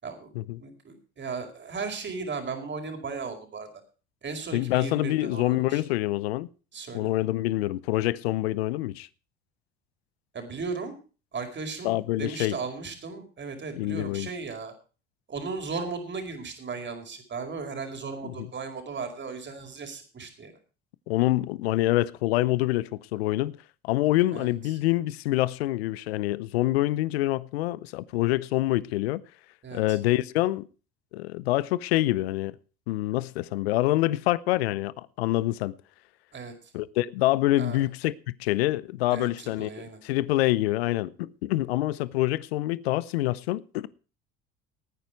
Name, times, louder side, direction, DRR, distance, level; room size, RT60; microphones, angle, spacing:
voice 1, 0.0-0.3 0.6-3.7 4.2-5.8 6.7-7.1 10.3-10.9 11.3-14.7 15.3-20.5 24.3-24.5 29.6-30.0 36.3-36.5 37.5-37.9 39.1-40.0, right 4 dB, 35° right, 5.0 m, -36 dB
voice 2, 4.5-6.5 6.9-9.1 11.8-12.6 13.8-14.3 21.1-23.6 23.8-29.2 29.7-30.7 31.1-32.5 32.9-35.7 36.7-43.9, left 17 dB, 80° left, 0.7 m, -26 dB
19.0 x 9.2 x 4.6 m
hypercardioid pair, 70°, 30 cm